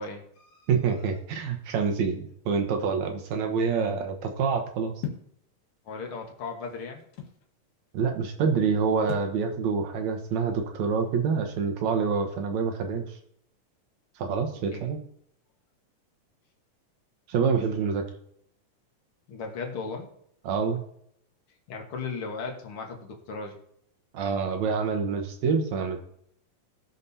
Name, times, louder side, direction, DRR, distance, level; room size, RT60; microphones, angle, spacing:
voice 1, 0.0-0.7 5.9-7.1 14.7-14.8 17.8-17.9 19.3-20.1 21.7-23.6, left 4 dB, 50° left, 1 dB, 1.8 m, -36 dB
voice 2, 0.7-4.9 7.9-13.1 14.2-15.0 17.3-18.0 20.5-20.8 24.1-26.0, right 5 dB, 65° right, 4 dB, 2.2 m, -26 dB
sound 1, 5.0-5.4 6.2-7.4 9.1-9.4, left 8 dB, 75° left, 3.0 m, -37 dB
19.0 x 6.4 x 2.8 m, 0.70 s
omnidirectional pair, 3.9 m